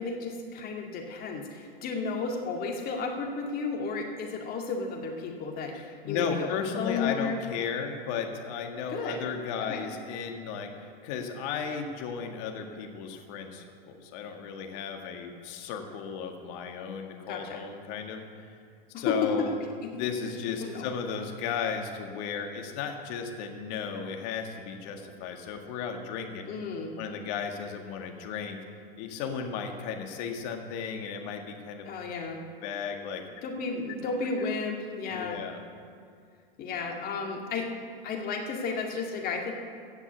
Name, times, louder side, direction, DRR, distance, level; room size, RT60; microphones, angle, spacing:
voice 1, 0.0-7.4 8.9-9.2 9.6-9.8 17.3-17.6 18.9-19.3 19.8-19.9 20.6-20.9 26.4-26.9 31.8-32.4 33.4-35.4 36.6-37.7 38.0-39.5, left 4 dB, 30° left, 1 dB, 2.1 m, -33 dB
voice 2, 5.7-18.5 19.0-19.6 19.9-26.4 27.0-28.6 29.0-31.8 32.6-33.2 34.4-34.5 35.0-35.6, left 6 dB, 45° left, 4 dB, 1.8 m, -35 dB
16.0 x 6.0 x 8.3 m, 2.2 s
hypercardioid pair, 110°, 29 cm